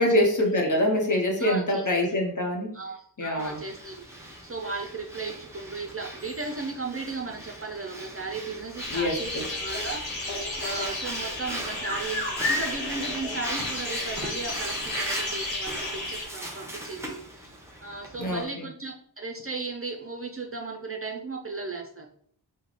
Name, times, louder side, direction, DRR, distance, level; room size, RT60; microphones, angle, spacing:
voice 1, 0.0-2.7 3.2-3.6 8.9-9.4 18.2-18.6, left 1 dB, 45° left, 0 dB, 0.9 m, -25 dB
voice 2, 1.4-1.8 2.7-4.0 4.2-10.2 10.5-17.6 17.8-22.1, right 3 dB, 30° right, 1 dB, 0.5 m, -36 dB
Breathing, 3.4-18.4, right 1 dB, 5° right, 0.8 m, -38 dB
sound 1, 8.8-16.2, left 2 dB, 90° left, 1.2 m, -32 dB
3.2 x 2.2 x 3.9 m, 0.63 s
wide cardioid pair, 55°, 43 cm